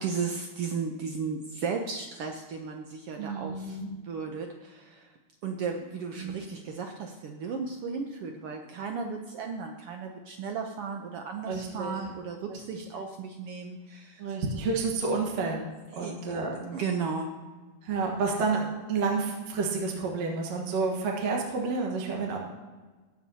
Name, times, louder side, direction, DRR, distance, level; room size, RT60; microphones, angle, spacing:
voice 1, 0.0-5.2 5.4-14.3 15.9-17.4, right 5 dB, 90° right, 3 dB, 1.2 m, -35 dB
voice 2, 3.2-3.9 6.2-6.4 11.5-12.0 12.5-12.8 14.2-15.7 15.9-16.6 17.8-22.4, right 4 dB, 60° right, 0 dB, 2.4 m, -30 dB
20.5 x 7.3 x 2.8 m, 1.3 s
omnidirectional pair, 3.6 m